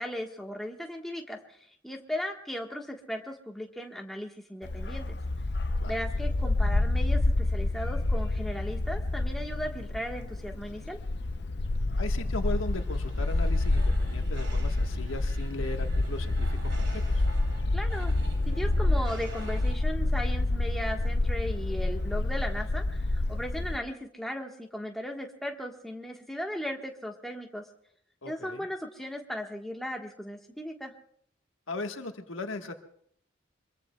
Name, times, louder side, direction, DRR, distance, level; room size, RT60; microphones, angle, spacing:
voice 1, 0.0-5.1 5.9-11.0 17.7-18.1 18.5-27.6 28.2-30.9, equal, ahead, 1 dB, 1.4 m, -37 dB
Bark, 4.6-23.8, left 2 dB, 55° left, 0.6 m, -28 dB
voice 2, 12.0-17.2 28.2-28.6 31.7-32.7, left 2 dB, 85° left, 5 dB, 1.5 m, -38 dB
sound 1, 12.3-19.7, equal, 70° right, 3.4 m, -43 dB
25.5 x 22.0 x 2.3 m, 0.67 s
head